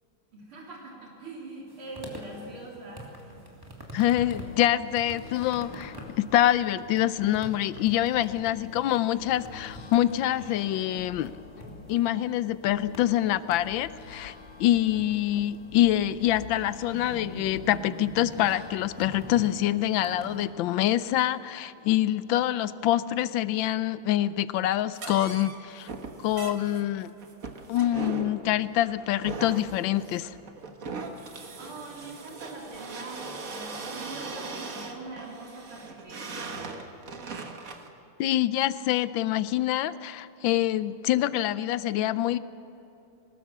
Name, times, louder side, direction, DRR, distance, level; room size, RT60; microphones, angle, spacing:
voice 1, 0.3-3.0 31.6-36.6, right 2 dB, 85° right, -2 dB, 4.2 m, -43 dB
sound 1, 1.7-20.5, right 2 dB, 10° right, 2.6 m, -46 dB
voice 2, 3.9-11.3 11.9-14.3 14.6-25.9 26.2-27.1 27.7-30.3 38.2-42.4, left 13 dB, 75° left, 15 dB, 1.3 m, -25 dB
sound 2, 4.1-20.5, left 6 dB, 90° left, 2.3 m, -47 dB
sound 3, 24.9-37.9, right 4 dB, 45° right, 1.7 m, -39 dB
22.0 x 19.5 x 7.3 m, 2.9 s
omnidirectional pair, 2.3 m